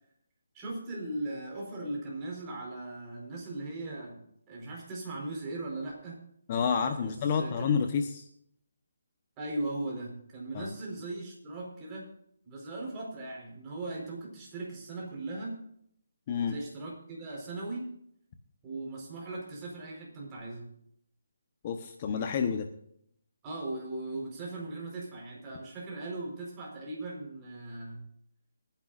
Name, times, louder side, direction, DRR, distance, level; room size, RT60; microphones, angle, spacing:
voice 1, 0.5-6.2 7.0-7.7 9.4-12.1 12.4-15.6 16.4-17.9 18.6-20.7 23.4-28.1, right 2 dB, 20° right, -2 dB, 4.7 m, -38 dB
voice 2, 6.5-8.3 10.5-10.7 16.3-16.6 21.6-22.7, left 6 dB, 30° left, 5 dB, 1.2 m, -29 dB
26.0 x 10.5 x 2.6 m, 0.69 s
hypercardioid pair, 165°, 0 cm